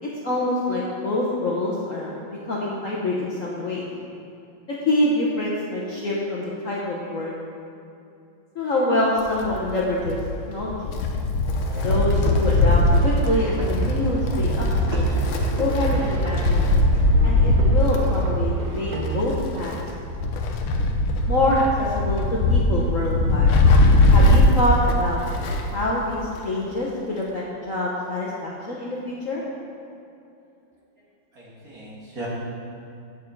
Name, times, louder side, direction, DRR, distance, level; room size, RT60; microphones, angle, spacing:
voice 1, 0.0-3.9 4.7-7.3 8.5-10.2 10.5-10.9 11.8-14.6 14.9-15.1 15.6-16.6 17.2-19.8 21.3-23.5 24.1-25.2 25.7-29.4, left 1 dB, 50° left, -5 dB, 1.1 m, -25 dB
Wind, 9.2-25.8 26.1-26.2 27.2-27.3, left 2 dB, 85° left, 1.7 m, -20 dB
sound 1, 11.6-19.2, right 4 dB, 85° right, 0.4 m, -29 dB
voice 2, 31.3-32.3, right 2 dB, 45° right, -7 dB, 2.5 m, -38 dB
9.2 x 7.2 x 4.6 m, 2.7 s
omnidirectional pair, 2.2 m